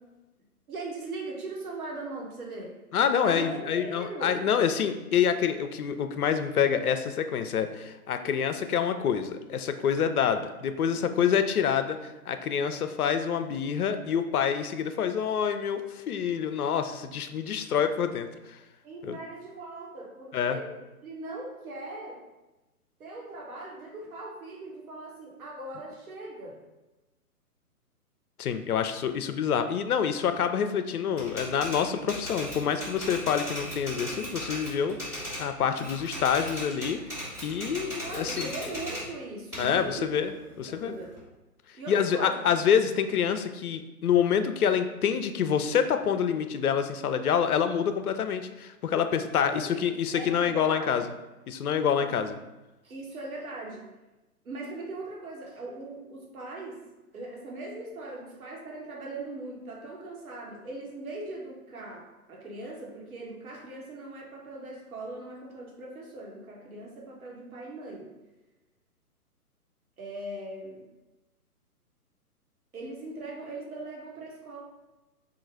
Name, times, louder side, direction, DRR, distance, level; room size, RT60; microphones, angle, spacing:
voice 1, 0.7-2.7 3.2-4.4 18.8-20.7 21.0-22.2 23.0-26.6 38.0-40.1 40.7-41.1 41.7-42.4 49.3-49.8 50.1-51.0 52.0-52.1 52.8-53.8 54.4-56.8 57.1-68.1 70.0-70.8 72.7-74.6, right 2 dB, 65° right, -1 dB, 1.3 m, -40 dB
voice 2, 2.9-18.6 19.0-19.2 20.3-20.6 28.4-37.0 37.4-38.5 39.6-41.0 41.9-51.0 51.5-52.4, left 7 dB, 70° left, 9 dB, 0.5 m, -27 dB
Typewriter, 31.2-35.5 35.8-39.1 39.5-41.2, equal, 5° right, 1.2 m, -37 dB
3.8 x 2.4 x 4.5 m, 1.1 s
hypercardioid pair, 145°, 46 cm